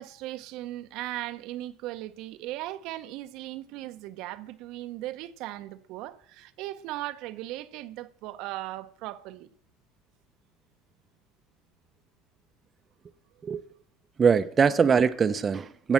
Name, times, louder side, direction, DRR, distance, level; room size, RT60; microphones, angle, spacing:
voice 1, 0.0-9.5, right 15 dB, 65° right, 0.7 m, -38 dB
voice 2, 14.2-15.9, right 6 dB, 30° right, 0.7 m, -22 dB
15.5 x 5.5 x 7.4 m
hypercardioid pair, 90°, 0 cm